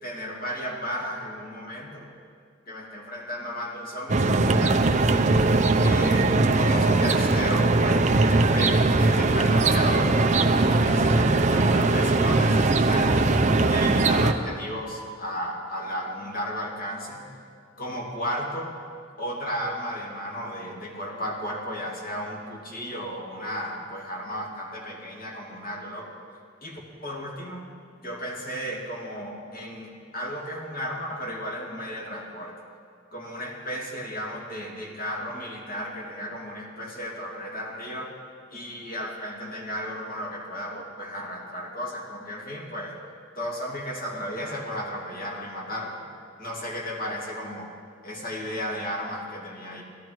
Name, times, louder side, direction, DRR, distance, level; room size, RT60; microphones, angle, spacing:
voice 1, 0.0-2.1 2.7-17.4 17.8-18.8 19.2-26.1 26.6-27.7 28.0-32.6 33.1-38.1 38.5-43.0 43.4-46.0 46.4-47.7 48.0-49.8, equal, 45° left, -2 dB, 2.6 m, -34 dB
sound 1, 4.1-14.3, right 2 dB, 35° right, 0.6 m, -20 dB
17.0 x 13.0 x 4.7 m, 2.1 s
head